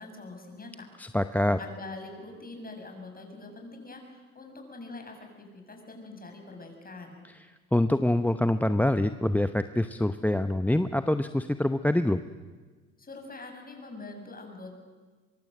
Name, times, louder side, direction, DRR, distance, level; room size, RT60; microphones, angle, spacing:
voice 1, 0.0-0.9 1.4-7.2 13.0-14.8, left 2 dB, 25° left, 3 dB, 7.1 m, -44 dB
voice 2, 1.0-1.6 7.7-12.2, left 1 dB, 5° left, 11 dB, 0.8 m, -25 dB
24.0 x 23.0 x 7.9 m, 1.4 s
hypercardioid pair, 65°, 35 cm